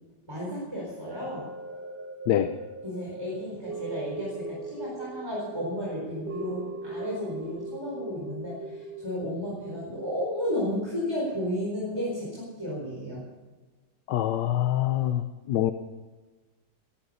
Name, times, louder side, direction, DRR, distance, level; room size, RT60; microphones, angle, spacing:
voice 1, 0.3-1.5 2.8-13.2, equal, 15° right, -4 dB, 4.6 m, -33 dB
sound 1, 1.1-11.4 11.9-12.0, right 2 dB, 70° right, 2.5 m, -40 dB
voice 2, 14.1-15.7, left 12 dB, 75° left, 9 dB, 1.4 m, -25 dB
19.5 x 13.0 x 5.6 m, 1.3 s
omnidirectional pair, 1.9 m